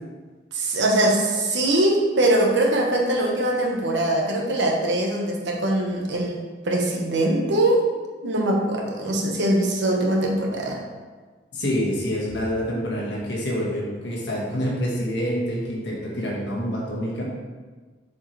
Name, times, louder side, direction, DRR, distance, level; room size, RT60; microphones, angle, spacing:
voice 1, 0.5-6.4 6.6-7.8 8.2-10.8, right 1 dB, 75° right, 0 dB, 1.1 m, -22 dB
voice 2, 11.5-17.2, equal, 70° left, -4 dB, 1.8 m, -27 dB
7.0 x 4.6 x 3.3 m, 1.4 s
head